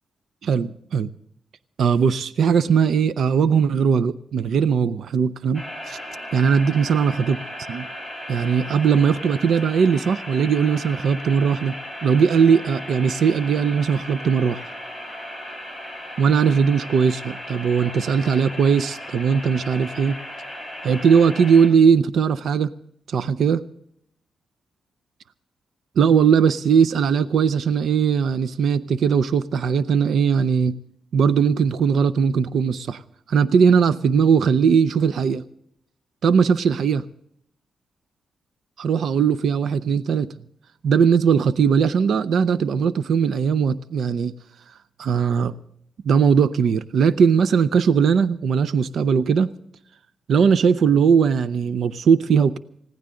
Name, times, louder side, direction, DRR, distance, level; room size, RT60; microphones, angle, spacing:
voice 1, 0.4-1.1 1.8-6.0 6.3-7.4 7.7-7.9 8.3-11.7 12.0-14.6 16.2-20.2 20.8-22.7 23.1-23.6 26.0-30.8 31.1-33.0 33.3-35.4 36.2-37.0 38.8-40.3 40.8-44.3 45.0-45.5 46.0-49.5 50.3-52.6, right 6 dB, 70° right, 15 dB, 0.5 m, -19 dB
sound 1, 5.5-21.7, equal, 20° right, 4.4 m, -36 dB
20.0 x 16.5 x 3.8 m, 0.70 s
wide cardioid pair, 135°, 0 cm